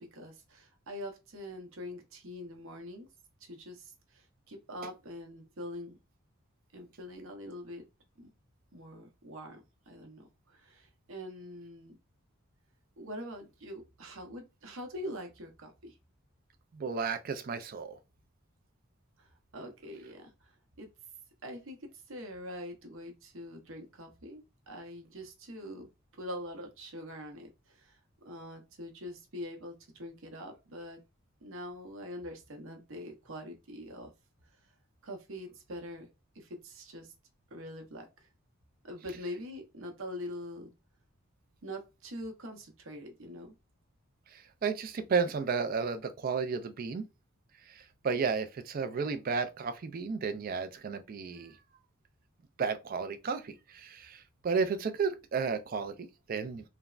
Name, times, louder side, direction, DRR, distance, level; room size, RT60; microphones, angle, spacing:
voice 1, 0.0-3.1 3.4-6.0 6.7-7.8 8.2-8.3 8.7-9.6 9.9-12.0 13.0-16.0 19.2-20.5 20.8-20.9 21.4-21.8 22.1-28.0 28.2-31.0 31.4-34.1 35.0-36.1 36.3-37.1 37.5-38.3 38.8-40.7 41.6-43.5, equal, 65° right, 0.8 m, -44 dB
voice 2, 16.7-18.0 44.3-47.0 47.7-51.6 52.6-56.6, right 5 dB, 40° right, 0.3 m, -33 dB
3.3 x 2.0 x 2.4 m
head